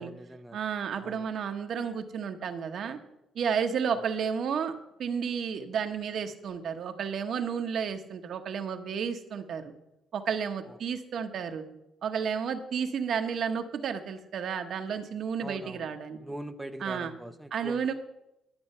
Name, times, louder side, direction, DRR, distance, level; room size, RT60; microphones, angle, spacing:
voice 1, 0.0-0.6 1.0-1.3 4.0-4.1 10.7-10.8 15.4-15.9 16.2-17.9, right 1 dB, 5° right, 7 dB, 0.6 m, -42 dB
voice 2, 0.5-3.0 3.3-4.7 5.0-9.7 10.1-11.6 12.0-16.2 16.8-17.1 17.5-17.9, right 7 dB, 65° right, 6 dB, 1.0 m, -32 dB
11.5 x 6.9 x 5.5 m, 0.88 s
cardioid pair, 90°, 0 cm